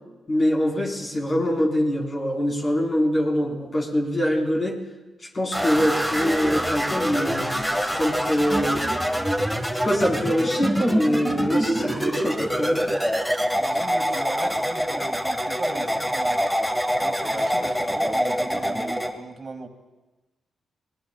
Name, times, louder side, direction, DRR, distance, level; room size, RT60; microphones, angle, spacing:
voice 1, 0.3-4.8 5.3-8.8 9.8-12.9, equal, 40° left, -2 dB, 4.6 m, -24 dB
sound 1, 5.5-19.1, equal, 5° left, 1.7 m, -25 dB
voice 2, 13.6-16.4 17.0-19.7, right 3 dB, 45° right, 5 dB, 2.1 m, -37 dB
25.5 x 19.5 x 2.4 m, 1.1 s
supercardioid pair, 55°, 0 cm